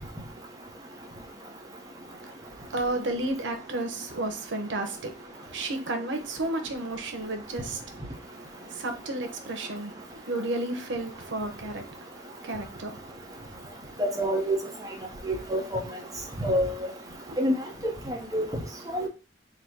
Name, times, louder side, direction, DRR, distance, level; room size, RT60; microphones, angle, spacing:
voice 1, 2.1-13.8 17.3-17.4, right 2 dB, 90° right, 0.8 m, -33 dB
voice 2, 14.0-14.6 15.2-15.8 16.4-16.9 17.4-17.5 17.8-18.4 18.9-19.1, equal, 20° right, 0.9 m, -27 dB
3.9 x 2.2 x 4.5 m
head